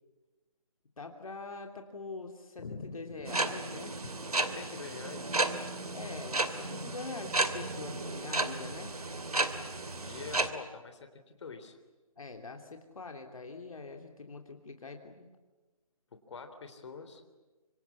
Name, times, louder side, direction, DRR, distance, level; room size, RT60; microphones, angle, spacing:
voice 1, 1.0-2.6 2.9-4.0 5.9-9.0 12.2-15.3, left 3 dB, 65° left, 4 dB, 3.1 m, -44 dB
voice 2, 2.6-3.3 4.3-5.4 10.0-11.8 16.3-17.2, left 4 dB, 50° left, 7 dB, 3.4 m, -45 dB
sound 1, 3.2-10.5, right 2 dB, 85° right, 2.6 m, -33 dB
26.0 x 25.5 x 8.4 m, 1.2 s
figure-of-eight pair, 155°, 19 cm